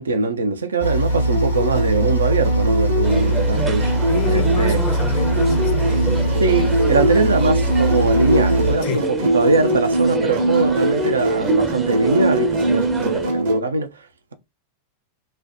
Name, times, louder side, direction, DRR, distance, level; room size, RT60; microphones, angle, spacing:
voice 1, 0.0-4.8 6.4-14.1, right 3 dB, 70° right, 0.4 m, -22 dB
sound 1, 0.8-8.8, right 1 dB, 85° left, 0.8 m, -21 dB
sound 2, 1.1-13.6, right 1 dB, 55° right, 0.8 m, -22 dB
sound 3, 3.0-13.3, right 3 dB, 15° right, 0.5 m, -30 dB
voice 2, 4.1-6.3 8.8-9.0 13.0-13.1, left 7 dB, 45° left, 0.5 m, -30 dB
3.0 x 2.1 x 2.5 m
figure-of-eight pair, 90°, 0 cm